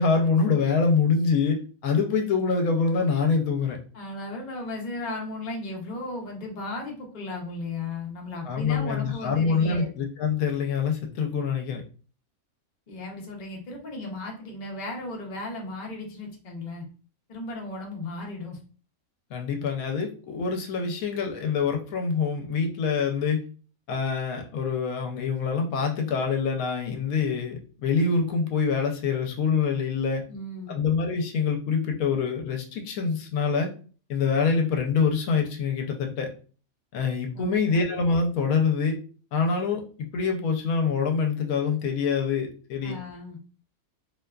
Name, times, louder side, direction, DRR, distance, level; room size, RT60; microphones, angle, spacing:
voice 1, 0.0-3.8 8.5-11.8 19.3-23.4 23.9-30.2 30.7-33.7 34.1-36.3 36.9-39.0 39.3-43.0, left 5 dB, 80° left, 3 dB, 1.0 m, -25 dB
voice 2, 3.9-9.9 12.9-16.8 17.3-18.6 30.3-30.8 37.3-37.6 42.8-43.4, left 2 dB, 45° left, 0 dB, 0.6 m, -35 dB
2.7 x 2.2 x 2.2 m, 0.38 s
omnidirectional pair, 1.5 m